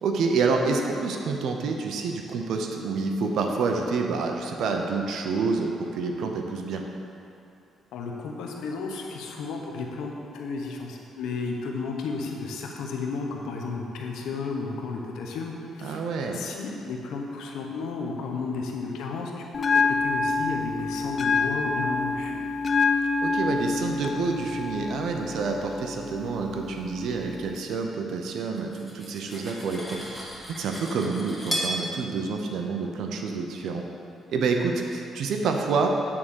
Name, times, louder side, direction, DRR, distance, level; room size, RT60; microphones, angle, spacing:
voice 1, 0.0-6.8 15.8-16.4 23.2-33.9 34.3-35.9, right 4 dB, 75° right, 2 dB, 0.6 m, -28 dB
voice 2, 7.9-16.0 16.3-22.4, left 4 dB, 85° left, 0 dB, 0.9 m, -33 dB
Bell, 19.5-27.5, left 4 dB, 45° left, 0.4 m, -27 dB
Cutlery silverware, 28.6-31.8, equal, 5° right, 1.8 m, -34 dB
8.6 x 3.7 x 6.4 m, 2.7 s
cardioid pair, 90°, 0 cm